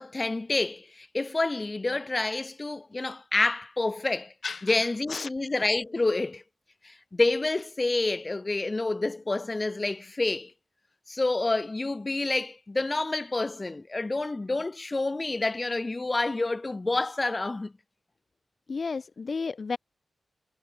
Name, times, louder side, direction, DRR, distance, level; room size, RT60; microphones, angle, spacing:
voice 1, 0.0-4.3 4.6-6.4 6.8-10.5 11.1-17.7, left 2 dB, 25° left, 6.1 m, -28 dB
voice 2, 4.4-4.7 5.1-5.3 18.7-19.8, left 4 dB, 45° left, 2.1 m, -32 dB
wide cardioid pair, 135°, 0 cm